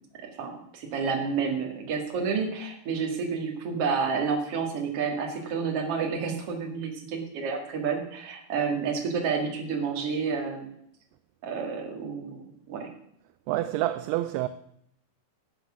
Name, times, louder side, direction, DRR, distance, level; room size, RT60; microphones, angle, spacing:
voice 1, 0.4-10.7 11.4-12.9, right 5 dB, 45° right, 2.5 m, -30 dB
voice 2, 13.5-14.5, right 15 dB, 80° right, 2.4 m, -27 dB
12.0 x 8.5 x 6.3 m
omnidirectional pair, 4.8 m